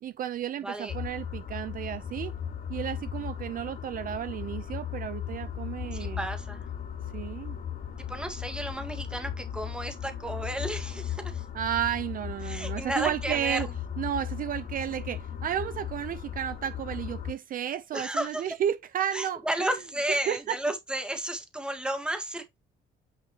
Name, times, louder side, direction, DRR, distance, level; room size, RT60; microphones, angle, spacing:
voice 1, 0.0-2.3 2.7-6.2 7.1-7.6 11.5-13.7 14.0-19.7 20.1-20.6, right 10 dB, 50° right, 0.6 m, -32 dB
voice 2, 0.6-0.9 5.9-6.6 8.1-11.4 12.4-13.6 17.9-18.4 19.1-22.6, right 1 dB, 5° right, 1.8 m, -33 dB
sound 1, 0.9-17.3, left 8 dB, 50° left, 3.1 m, -37 dB
9.0 x 5.3 x 2.9 m
cardioid pair, 155°, 19 cm